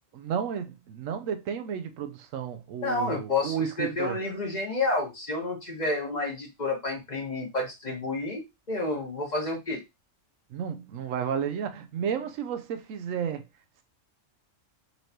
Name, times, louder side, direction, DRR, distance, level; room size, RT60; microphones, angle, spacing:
voice 1, 0.1-4.2 10.5-13.5, right 8 dB, 80° right, 1.0 m, -32 dB
voice 2, 2.8-9.8, left 2 dB, 35° left, 1.2 m, -30 dB
4.3 x 3.1 x 2.7 m
omnidirectional pair, 1.3 m